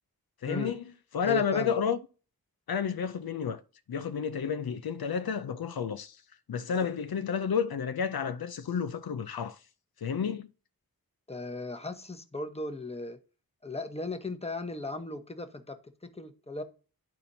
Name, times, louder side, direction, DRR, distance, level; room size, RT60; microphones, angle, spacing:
voice 1, 0.4-0.8 1.1-2.0 2.7-3.6 3.9-6.2 6.5-9.6 10.0-10.5, left 7 dB, 80° left, 0.5 m, -30 dB
voice 2, 1.2-1.8 11.3-13.2 13.6-15.8 16.0-16.6, left 2 dB, 15° left, 1.0 m, -37 dB
11.5 x 4.2 x 2.7 m
wide cardioid pair, 50°, 36 cm